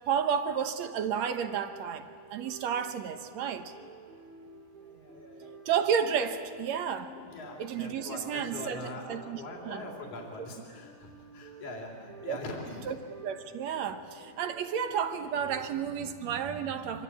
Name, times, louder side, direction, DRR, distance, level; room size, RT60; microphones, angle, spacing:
voice 1, 0.1-3.7 5.7-7.1 7.6-8.8 9.1-9.9 12.3-12.4 12.9-13.0 13.2-17.0, right 7 dB, 65° right, 8 dB, 2.0 m, -31 dB
sound 1, 1.4-15.7, right 3 dB, 85° right, 7.2 m, -51 dB
voice 2, 4.7-5.5 7.1-13.0, left 2 dB, 55° left, 0 dB, 4.7 m, -43 dB
25.5 x 24.5 x 8.5 m, 2.2 s
omnidirectional pair, 4.1 m